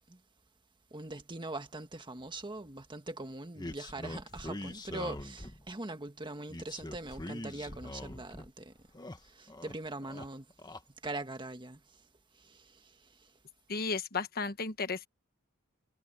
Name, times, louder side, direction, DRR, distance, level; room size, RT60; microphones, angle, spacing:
voice 1, 0.9-8.7 9.2-10.5 11.0-11.8 12.4-13.0, right 2 dB, 20° right, 1.6 m, -42 dB
sound 1, 3.6-5.7 6.5-8.5 8.8-9.8 10.0-10.8, left 1 dB, 20° left, 1.5 m, -43 dB
voice 2, 13.7-15.1, left 4 dB, 45° left, 1.3 m, -34 dB
head